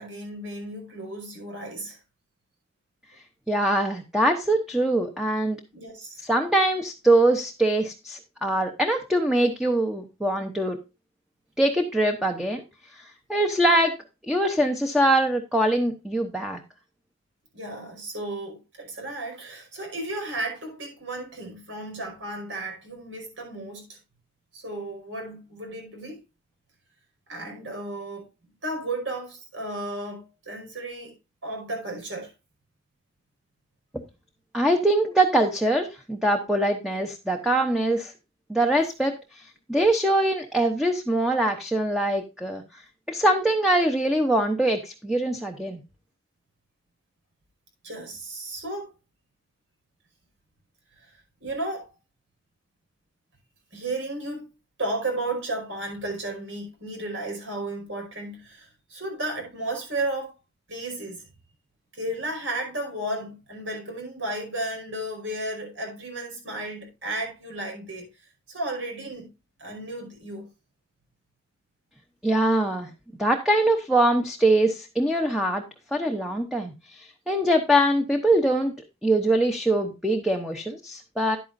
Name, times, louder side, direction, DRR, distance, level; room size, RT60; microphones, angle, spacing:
voice 1, 0.0-2.0 5.7-6.2 17.5-24.0 24.5-26.2 27.3-28.3 28.6-31.1 31.4-32.3 47.8-48.9 51.0-51.9 53.7-54.5 54.8-60.3 60.7-61.3 61.9-68.1 68.5-69.3 69.6-70.5, right 2 dB, 75° right, 5.3 m, -33 dB
voice 2, 3.5-5.6 6.2-10.8 11.6-12.6 13.3-13.9 14.3-16.6 34.5-38.1 38.5-42.6 43.1-45.8 72.2-72.9 73.2-75.6 75.9-78.7 79.0-81.4, right 1 dB, ahead, 0.8 m, -23 dB
11.0 x 9.1 x 2.6 m
head